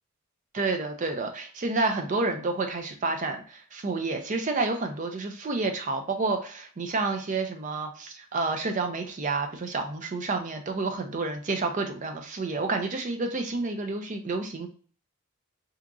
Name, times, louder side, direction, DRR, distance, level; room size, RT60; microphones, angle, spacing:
voice 1, 0.5-14.7, right 3 dB, 35° right, 6 dB, 0.4 m, -29 dB
2.8 x 2.4 x 3.6 m, 0.43 s
head